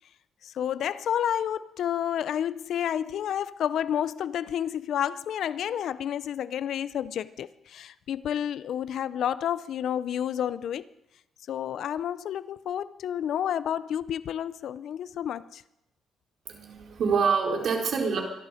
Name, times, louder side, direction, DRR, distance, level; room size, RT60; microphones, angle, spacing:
voice 1, 0.4-10.9 11.5-15.6, left 9 dB, 70° left, 0.6 m, -30 dB
voice 2, 16.5-18.2, right 5 dB, 60° right, 4.3 m, -26 dB
25.0 x 11.0 x 5.1 m
cardioid pair, 90°, 0 cm